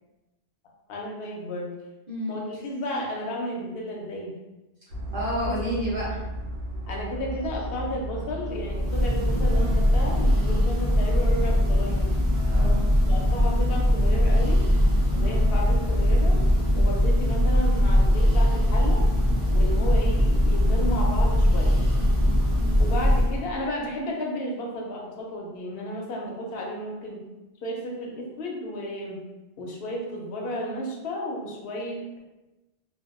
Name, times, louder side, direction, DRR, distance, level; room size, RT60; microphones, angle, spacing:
voice 1, 0.9-1.7 2.3-4.3 5.4-5.6 6.1-6.2 6.9-12.1 13.1-14.6 15.1-16.4 16.8-19.0 19.5-21.8 22.8-27.2 27.6-29.2 29.6-32.2, equal, 65° left, -1 dB, 0.8 m, -33 dB
voice 2, 2.1-2.4 5.1-6.1 6.9-7.1 12.5-12.9 22.5-22.8, equal, 55° right, -9 dB, 1.1 m, -30 dB
sound 1, 4.9-9.9, right 1 dB, 85° right, 0.9 m, -35 dB
Church bell, 8.6-23.5, left 1 dB, 30° right, 0.5 m, -21 dB
2.6 x 2.2 x 2.4 m, 1.0 s
omnidirectional pair, 1.1 m